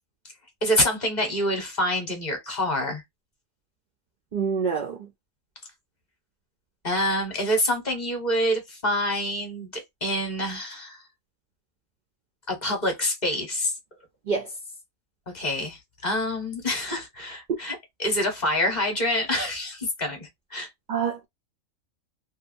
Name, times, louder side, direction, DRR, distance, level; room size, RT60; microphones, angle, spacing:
voice 1, 0.6-3.0 6.8-11.0 12.5-13.7 15.3-20.7, left 1 dB, 35° left, 1.0 m, -26 dB
voice 2, 4.3-5.0 14.3-14.5 20.9-21.3, right 6 dB, 85° right, 0.4 m, -26 dB
2.7 x 2.3 x 2.5 m
omnidirectional pair, 1.4 m